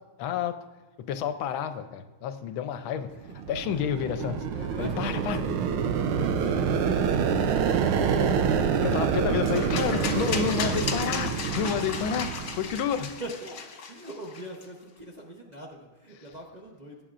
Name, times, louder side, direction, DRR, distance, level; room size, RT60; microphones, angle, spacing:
voice 1, 0.2-0.6 1.1-3.1 3.5-4.5 4.8-5.4 8.8-13.1, left 8 dB, 75° left, 10 dB, 1.4 m, -30 dB
sound 1, 3.2-13.0, right 6 dB, 80° right, 1.5 m, -27 dB
voice 2, 3.7-4.1 4.5-5.6 13.1-13.6 13.9-17.0, right 1 dB, 45° right, -2 dB, 0.5 m, -43 dB
sound 2, 9.5-14.6, left 5 dB, 50° left, 1.4 m, -35 dB
18.0 x 8.8 x 2.5 m, 1.2 s
omnidirectional pair, 2.4 m